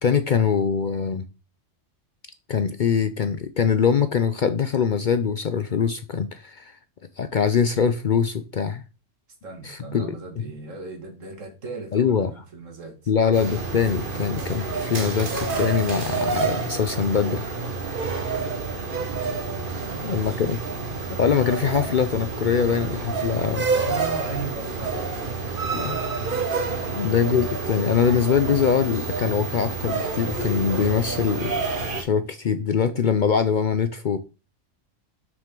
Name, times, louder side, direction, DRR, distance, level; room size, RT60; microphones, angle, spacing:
voice 1, 0.0-1.3 2.5-6.8 7.2-8.8 9.6-10.2 11.9-12.3 13.1-17.5 20.0-20.6 21.2-23.7 25.7-26.0 26.9-31.5 32.0-34.3, left 7 dB, 55° left, 0.6 m, -23 dB
voice 2, 9.4-13.1 19.7-20.4 23.4-26.1 26.7-27.1, right 4 dB, 85° right, 2.2 m, -38 dB
Ambience subway escalator, 13.3-32.0, right 4 dB, 45° right, 1.4 m, -28 dB
7.1 x 6.2 x 3.8 m
omnidirectional pair, 1.3 m